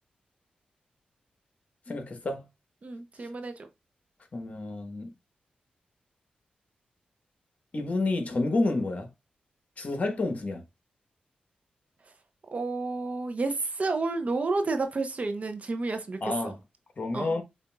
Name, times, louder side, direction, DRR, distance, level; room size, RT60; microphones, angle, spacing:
voice 1, 1.9-2.5 4.3-5.1 7.7-9.1 9.8-10.6 16.2-16.5 17.0-17.4, left 2 dB, 50° left, 1.2 m, -29 dB
voice 2, 2.8-3.7 12.5-16.6 17.1-17.4, right 3 dB, 50° right, 0.8 m, -30 dB
6.6 x 2.6 x 2.3 m
cardioid pair, 60°, 3 cm